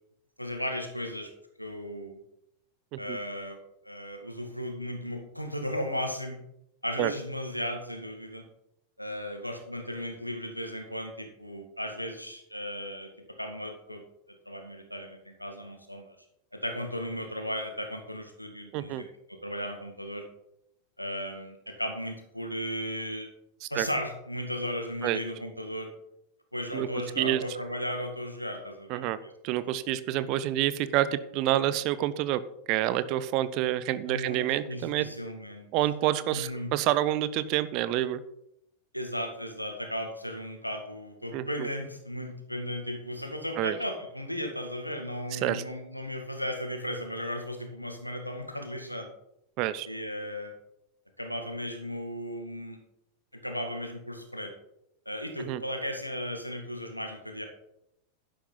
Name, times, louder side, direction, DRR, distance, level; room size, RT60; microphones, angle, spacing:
voice 1, 0.4-1.3 1.6-2.2 3.0-3.6 3.8-6.4 6.8-8.4 9.0-13.1 13.4-14.0 14.5-16.2 16.5-19.1 19.4-20.2 21.0-23.3 23.7-25.9 26.5-29.7 34.1-35.7 36.3-36.7 38.9-49.1 49.9-50.5 51.2-52.8 53.4-54.5 55.1-57.4, equal, 90° left, 5 dB, 1.9 m, -36 dB
voice 2, 18.7-19.0 23.6-23.9 25.0-25.2 26.7-26.9 27.2-27.4 28.9-29.2 29.4-32.4 32.7-35.1 35.7-38.2 41.3-41.7 43.6-43.8 45.3-45.6 49.6-49.9 55.4-55.6, right 13 dB, 40° right, 15 dB, 0.7 m, -28 dB
11.5 x 10.5 x 4.0 m, 0.81 s
figure-of-eight pair, 90°, 0 cm